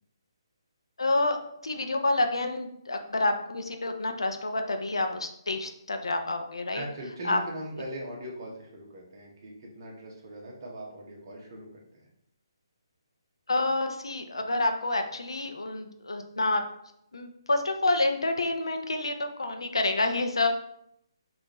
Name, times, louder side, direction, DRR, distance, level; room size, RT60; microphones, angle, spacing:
voice 1, 1.0-6.8 7.2-7.4 13.5-16.7 17.1-20.6, left 2 dB, 75° left, 5 dB, 0.5 m, -28 dB
voice 2, 6.7-12.0, right 1 dB, 45° right, -2 dB, 1.0 m, -40 dB
3.6 x 2.5 x 3.0 m, 0.73 s
figure-of-eight pair, 140°, 3 cm